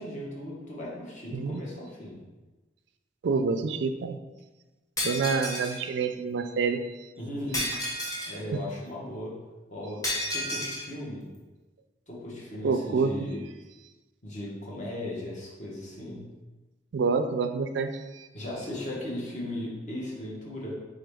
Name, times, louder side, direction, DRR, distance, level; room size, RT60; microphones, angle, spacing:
voice 1, 0.0-2.2 7.2-9.4 9.7-10.0 10.3-11.3 12.1-13.4 14.2-16.3 18.3-20.7, left 1 dB, 45° left, -4 dB, 1.2 m, -37 dB
voice 2, 3.2-4.2 5.0-7.1 12.6-13.1 16.9-18.3, right 4 dB, 75° right, 8 dB, 0.4 m, -27 dB
Shatter, 5.0-5.8 7.5-8.4 10.0-10.9, left 1 dB, 20° left, 1.0 m, -31 dB
3.9 x 3.9 x 3.4 m, 1.2 s
head